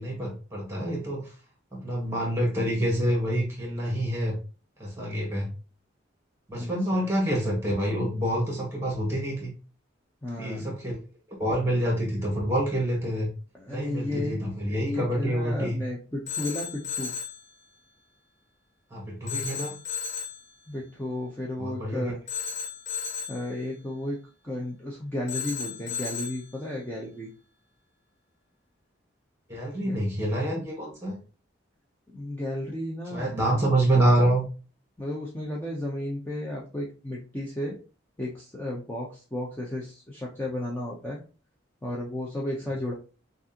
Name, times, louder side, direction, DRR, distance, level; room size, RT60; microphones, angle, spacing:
voice 1, 0.0-1.3 1.7-4.4 4.8-5.5 6.5-9.5 10.4-11.0 11.4-13.3 13.7-15.8 18.9-19.8 21.6-22.1 29.5-31.2 33.1-34.4, right 1 dB, 15° right, -1 dB, 1.6 m, -27 dB
voice 2, 6.5-7.1 10.2-10.7 13.5-14.4 14.7-17.1 20.7-22.2 23.3-27.3 29.8-29.9 32.1-33.3 35.0-37.8 38.2-41.2 41.8-42.9, left 1 dB, 10° left, -4 dB, 0.6 m, -33 dB
Telephone, 16.3-17.4 19.3-20.4 22.3-23.4 25.3-26.4, left 6 dB, 35° left, 1.1 m, -34 dB
6.0 x 2.5 x 2.8 m, 0.34 s
head